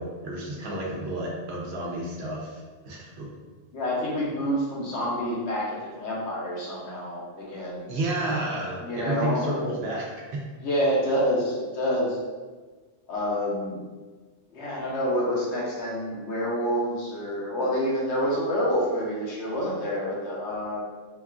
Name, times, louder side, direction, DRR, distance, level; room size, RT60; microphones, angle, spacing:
voice 1, 0.0-2.6 2.9-3.3 7.9-10.4, right 1 dB, 65° right, -3 dB, 0.8 m, -31 dB
voice 2, 3.7-7.9 8.8-9.5 10.6-12.2 13.1-13.8 14.5-20.8, equal, 70° left, -4 dB, 1.0 m, -27 dB
3.0 x 2.3 x 2.3 m, 1.4 s
omnidirectional pair, 1.2 m